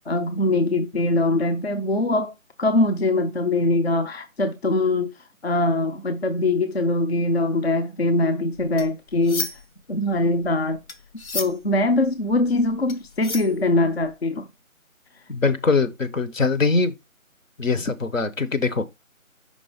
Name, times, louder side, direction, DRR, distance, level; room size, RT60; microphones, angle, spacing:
voice 1, 0.0-2.3 2.6-5.1 5.4-9.5 9.9-10.8 11.3-14.5, left 2 dB, 50° left, 0.6 m, -22 dB
sound 1, 8.5-9.8 10.1-14.1, left 3 dB, 85° left, 1.2 m, -33 dB
voice 2, 15.3-16.9 17.6-18.8, left 4 dB, 70° left, 1.0 m, -22 dB
5.4 x 3.5 x 5.0 m
figure-of-eight pair, 170°, 41 cm